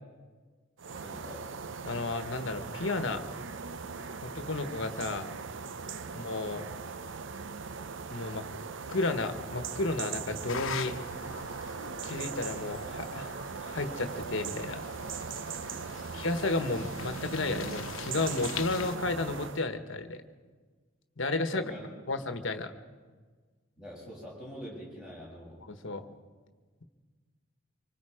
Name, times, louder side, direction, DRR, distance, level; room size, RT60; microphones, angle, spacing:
sound 1, 0.8-19.6, right 5 dB, 65° right, 0.6 m, -39 dB
voice 1, 0.9-1.5 15.6-16.2 21.5-21.9 23.8-25.6, equal, 5° right, -5 dB, 6.8 m, -45 dB
voice 2, 1.8-3.2 4.2-5.3 6.1-6.6 8.1-8.5 8.9-11.0 12.0-14.8 16.1-20.2 21.2-21.7 22.1-22.7 25.7-26.1, left 2 dB, 65° left, 8 dB, 1.4 m, -32 dB
sound 2, 10.5-19.0, left 7 dB, 80° left, 1.1 m, -44 dB
25.5 x 24.5 x 5.1 m, 1.4 s
head